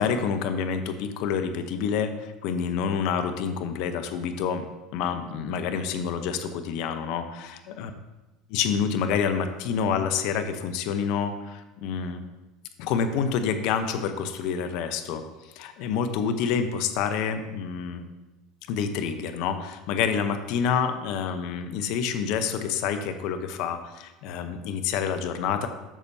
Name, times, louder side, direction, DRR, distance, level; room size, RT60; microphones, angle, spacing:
voice 1, 0.0-4.7 4.9-7.9 8.5-12.2 12.8-15.2 15.6-18.1 18.7-25.7, left 7 dB, 65° left, 8 dB, 0.9 m, -28 dB
12.5 x 6.8 x 2.8 m, 1.1 s
hypercardioid pair, 90°, 0 cm